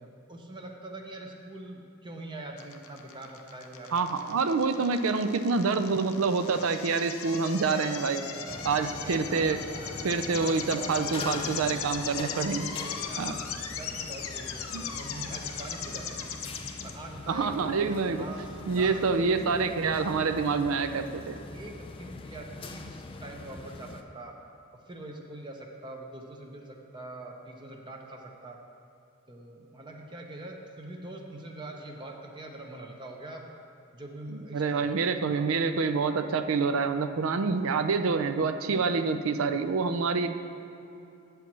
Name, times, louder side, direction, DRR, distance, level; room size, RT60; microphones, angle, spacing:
voice 1, 0.0-4.1 6.5-6.7 8.2-11.7 13.0-13.4 13.7-16.3 16.8-17.5 17.9-19.8 21.5-24.3 24.9-28.6 29.3-33.4 33.9-34.8 35.1-35.5 38.8-39.1, right 2 dB, 20° right, 1 dB, 0.6 m, -43 dB
sound 1, 2.6-16.9, left 7 dB, 75° left, 0.6 m, -38 dB
voice 2, 3.9-8.2 8.6-9.6 10.0-12.7 13.2-13.4 14.7-14.8 17.3-18.3 18.7-21.4 34.3-40.4, right 4 dB, 70° right, 9 dB, 0.4 m, -27 dB
sound 2, 8.5-24.0, left 3 dB, 25° left, 0.4 m, -42 dB
8.1 x 4.6 x 7.3 m, 2.7 s
head